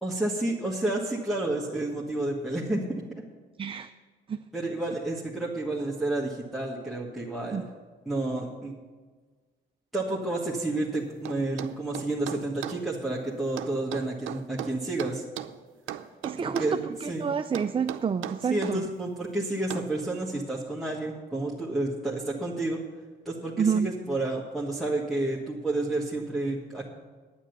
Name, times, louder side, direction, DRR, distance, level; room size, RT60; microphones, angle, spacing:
voice 1, 0.0-3.2 4.5-7.6 8.0-8.7 9.9-15.2 16.4-17.3 18.4-22.8 23.2-26.9, right 2 dB, ahead, -6 dB, 1.6 m, -30 dB
voice 2, 3.6-3.9 4.3-4.4 7.5-7.6 16.2-18.9 23.6-23.9, right 6 dB, 25° right, 8 dB, 0.4 m, -28 dB
sound 1, 11.2-12.8 13.6-15.5 15.9-16.8 17.5-18.8 19.7-19.9, right 12 dB, 85° right, 0.6 m, -37 dB
10.0 x 9.3 x 6.7 m, 1.4 s
cardioid pair, 90°, 20 cm